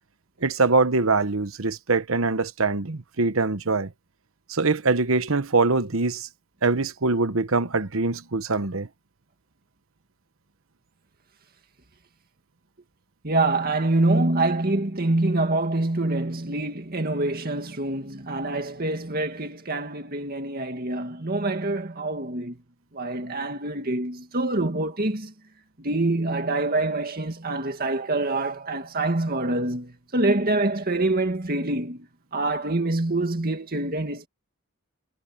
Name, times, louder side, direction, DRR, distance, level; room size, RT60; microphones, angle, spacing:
voice 1, 0.4-3.9 4.5-6.3 6.6-8.9, right 3 dB, 65° right, 1.1 m, -23 dB
voice 2, 13.2-22.6 22.9-25.3 25.8-34.3, right 2 dB, 45° right, 2.1 m, -26 dB
head